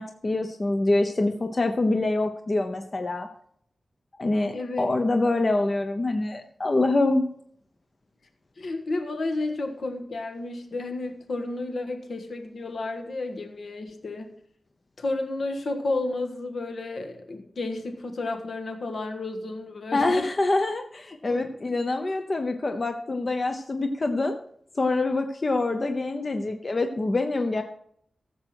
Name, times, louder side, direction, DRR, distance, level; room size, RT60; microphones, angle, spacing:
voice 1, 0.0-3.3 4.2-7.3 19.9-24.4 24.8-27.6, left 2 dB, 35° left, 6 dB, 0.8 m, -25 dB
voice 2, 4.5-4.9 8.6-14.3 15.0-20.3 21.2-21.5, left 2 dB, 65° left, 4 dB, 1.5 m, -32 dB
15.0 x 7.7 x 4.7 m, 0.68 s
wide cardioid pair, 125°, 0 cm